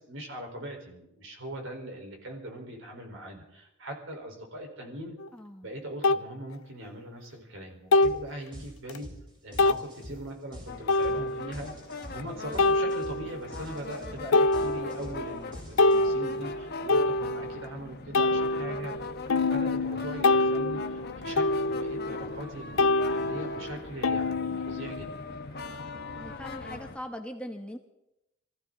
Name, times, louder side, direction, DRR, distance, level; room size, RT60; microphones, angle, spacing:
voice 1, 0.0-5.2 5.6-9.1 9.4-11.7 12.1-19.0 19.3-25.2, right 1 dB, 65° right, 2 dB, 4.4 m, -40 dB
sound 1, 5.2-5.3 6.0-6.2 7.9-8.3 8.9-9.0 9.6-9.8 10.9-11.5 12.6-13.4 13.9-14.0 14.3-15.2 15.5-17.7 18.1-22.5 22.8-25.1, left 2 dB, 85° left, 0.6 m, -26 dB
voice 2, 5.3-5.7 26.2-27.8, equal, 5° left, 4 dB, 1.1 m, -40 dB
sound 2, 8.0-8.2 8.5-16.3, equal, 25° right, 7.6 m, -45 dB
sound 3, 10.7-27.0, left 3 dB, 50° left, 1.3 m, -41 dB
24.0 x 15.0 x 3.9 m, 0.86 s
head